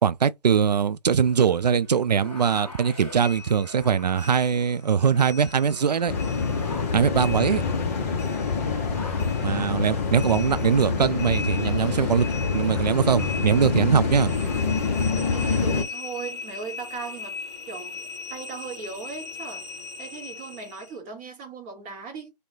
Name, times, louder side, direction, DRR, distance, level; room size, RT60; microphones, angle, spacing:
voice 1, 0.0-6.1 6.9-7.6 9.4-12.3 12.5-14.3, right 7 dB, 80° right, 0.4 m, -22 dB
sound 1, 1.2-14.6, left 5 dB, 5° left, 1.1 m, -44 dB
sound 2, 3.2-5.9 6.2-8.9 9.2-21.0, left 4 dB, 45° left, 0.9 m, -39 dB
sound 3, 6.1-15.8, left 5 dB, 25° left, 0.6 m, -26 dB
voice 2, 15.3-17.4 17.7-18.0 18.3-19.6 20.0-22.3, right 5 dB, 15° right, 0.7 m, -38 dB
3.0 x 2.1 x 3.8 m
figure-of-eight pair, 150°, 21 cm